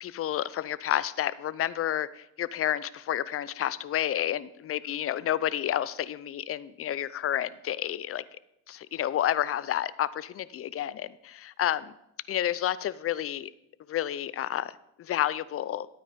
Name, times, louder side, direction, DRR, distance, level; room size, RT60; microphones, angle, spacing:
voice 1, 0.0-8.2 8.7-11.9 12.3-13.5 13.9-15.9, left 11 dB, 40° left, 18 dB, 0.6 m, -30 dB
12.5 x 8.9 x 5.2 m, 0.82 s
supercardioid pair, 95°, 35 cm